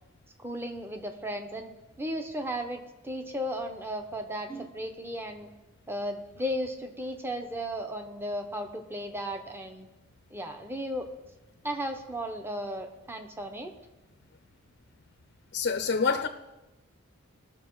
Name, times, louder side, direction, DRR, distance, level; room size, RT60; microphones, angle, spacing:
voice 1, 0.4-1.7 2.0-5.5 5.9-9.9 10.3-11.1 11.6-13.7, equal, 10° right, 5 dB, 1.0 m, -35 dB
voice 2, 15.5-16.3, left 5 dB, 55° left, 6 dB, 0.7 m, -26 dB
20.0 x 6.6 x 4.7 m, 1.0 s
head